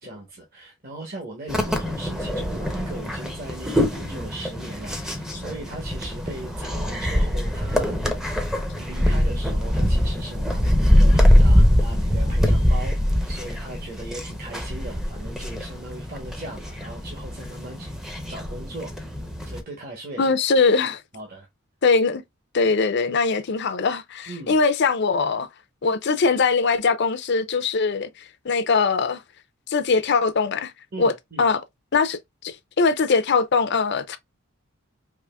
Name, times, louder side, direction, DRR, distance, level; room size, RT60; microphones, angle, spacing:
voice 1, 0.0-17.9 18.3-18.9 19.4-20.3 21.1-21.5 24.3-24.6 30.9-31.5, right 2 dB, 45° right, 1.0 m, -39 dB
sound 1, 1.5-19.6, equal, ahead, 0.6 m, -22 dB
voice 2, 20.2-21.0 21.8-22.2 22.5-25.5 25.8-28.1 28.4-29.2 29.7-30.7 31.0-31.1 31.4-31.6 31.9-32.2 32.4-34.2, left 4 dB, 55° left, 0.5 m, -21 dB
4.8 x 2.9 x 2.2 m
head